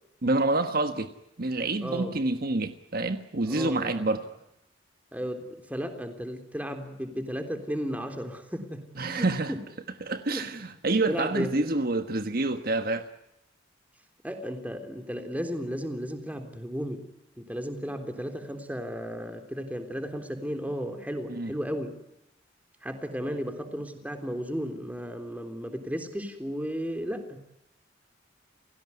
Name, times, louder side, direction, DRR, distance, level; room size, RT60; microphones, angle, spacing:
voice 1, 0.2-1.1 1.4-4.2 9.0-9.5 10.0-13.1 21.3-21.5, right 2 dB, 50° right, 1.4 m, -27 dB
voice 2, 1.8-2.2 3.5-4.0 5.1-9.6 10.3-10.5 11.1-11.7 14.2-17.1 17.4-21.9 22.8-27.4, equal, 10° right, 3.5 m, -34 dB
30.0 x 17.0 x 9.7 m
head